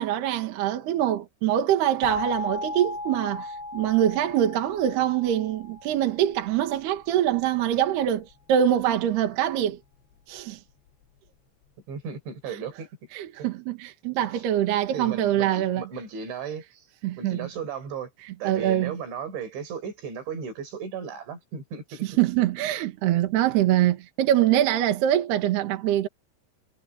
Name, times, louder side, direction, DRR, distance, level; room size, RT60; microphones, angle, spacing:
voice 1, 0.0-9.8 10.3-10.6 13.1-15.8 17.0-17.4 18.4-18.9 22.0-26.1, right 11 dB, 70° right, 3.7 m, -24 dB
sound 1, 2.0-6.8, left 2 dB, 75° left, 4.0 m, -36 dB
voice 2, 11.9-12.9 13.4-13.5 14.3-14.4 14.9-16.9 17.2-18.1 18.4-22.0, right 6 dB, 85° right, 6.7 m, -35 dB
omnidirectional pair, 5.1 m